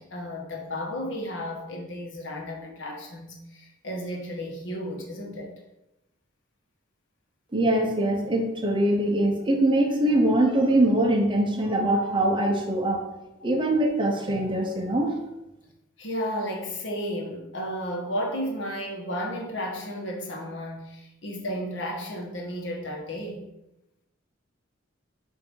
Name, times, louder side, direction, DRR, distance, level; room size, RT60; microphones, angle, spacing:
voice 1, 0.0-5.5 13.4-13.5 16.0-23.4, equal, 70° left, 0 dB, 1.3 m, -33 dB
voice 2, 7.5-13.0 13.4-15.2, right 1 dB, 25° right, 2 dB, 0.9 m, -23 dB
8.0 x 2.9 x 4.5 m, 0.90 s
head